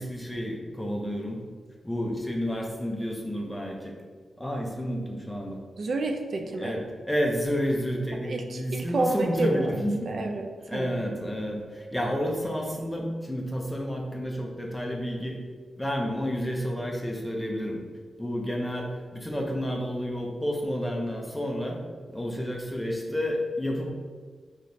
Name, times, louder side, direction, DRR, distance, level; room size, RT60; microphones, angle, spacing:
voice 1, 0.0-1.4 1.8-3.9 4.4-5.6 6.6-10.3 10.7-15.4 15.8-17.8 18.2-21.8 22.1-23.9, equal, 5° left, 0 dB, 0.6 m, -30 dB
voice 2, 5.8-6.8 8.2-10.9, right 2 dB, 55° right, 4 dB, 0.3 m, -30 dB
5.0 x 2.9 x 2.6 m, 1.6 s
wide cardioid pair, 135°, 0 cm